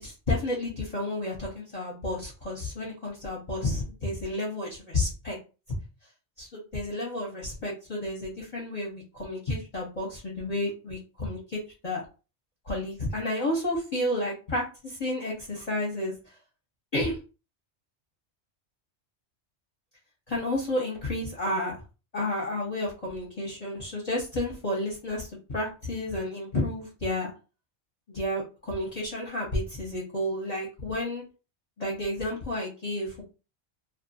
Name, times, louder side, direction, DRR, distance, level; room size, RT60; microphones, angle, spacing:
voice 1, 0.0-5.4 6.4-12.0 12.6-16.1 16.9-17.2 20.3-21.7 22.1-27.3 28.1-31.2 31.8-33.2, left 1 dB, 40° left, -5 dB, 0.8 m, -31 dB
2.5 x 2.4 x 2.6 m, 0.32 s
omnidirectional pair, 1.2 m